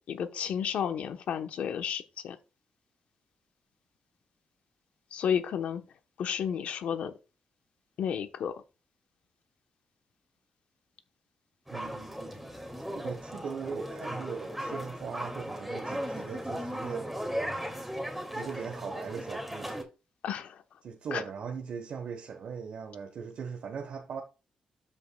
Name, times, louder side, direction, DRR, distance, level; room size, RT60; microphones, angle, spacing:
voice 1, 0.1-2.4 5.1-5.8 6.2-7.1 8.0-8.5 20.2-20.6 21.1-21.2, left 8 dB, 75° left, 1.0 m, -32 dB
sound 1, 11.7-19.8, equal, 5° right, 2.2 m, -37 dB
voice 2, 11.7-12.5 12.9-17.1 18.3-19.8 20.8-24.2, right 6 dB, 65° right, 1.1 m, -39 dB
13.0 x 5.4 x 2.3 m
supercardioid pair, 60°, 2 cm